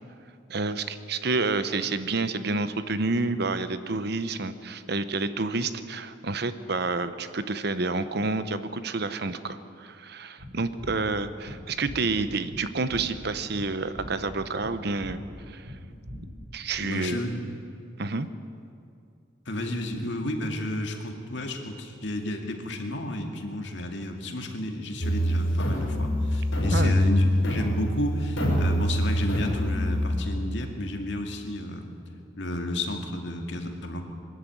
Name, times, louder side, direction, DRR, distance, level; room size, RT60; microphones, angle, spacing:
voice 1, 0.5-15.2 15.5-15.8 16.5-17.2 18.0-18.3 26.7-27.0, right 3 dB, 55° right, 12 dB, 0.9 m, -29 dB
sound 1, 10.4-16.7, equal, 85° right, 5.9 m, -42 dB
voice 2, 16.8-17.4 19.5-31.9 32.4-34.0, left 1 dB, 65° left, 3 dB, 2.3 m, -32 dB
sound 2, 25.0-30.2, equal, 85° left, 5.3 m, -25 dB
22.5 x 13.5 x 9.3 m, 2.5 s
head